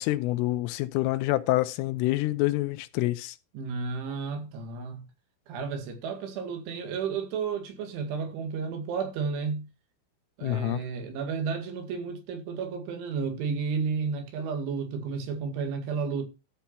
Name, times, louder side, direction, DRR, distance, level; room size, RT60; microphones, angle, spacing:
voice 1, 0.0-3.4 10.4-10.8, left 17 dB, 80° left, 3.2 m, -27 dB
voice 2, 3.5-5.0 5.5-9.7 10.4-16.3, right 5 dB, 70° right, 4.3 m, -32 dB
13.5 x 5.9 x 5.7 m
omnidirectional pair, 5.9 m